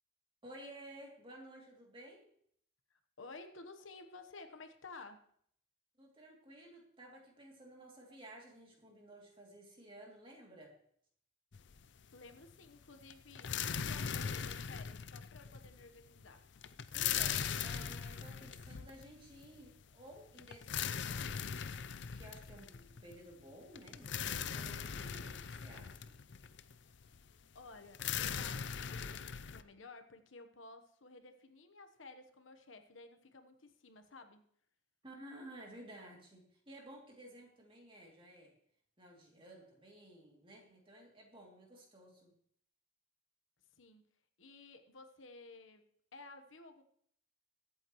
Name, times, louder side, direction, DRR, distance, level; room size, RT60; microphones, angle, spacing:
voice 1, 0.4-2.3 6.0-10.7 16.9-21.2 22.1-26.2 35.0-38.5 39.0-42.3, right 1 dB, 25° right, -1 dB, 2.8 m, -54 dB
voice 2, 2.9-5.3 12.1-16.5 27.5-34.4 43.7-44.0 44.4-45.8 46.1-46.8, left 3 dB, 80° left, 8 dB, 1.1 m, -54 dB
FP Burial In Wooden Coffin, 11.5-12.2 12.4-29.6, left 8 dB, 60° left, 0.5 m, -40 dB
22.0 x 8.7 x 3.1 m, 0.66 s
head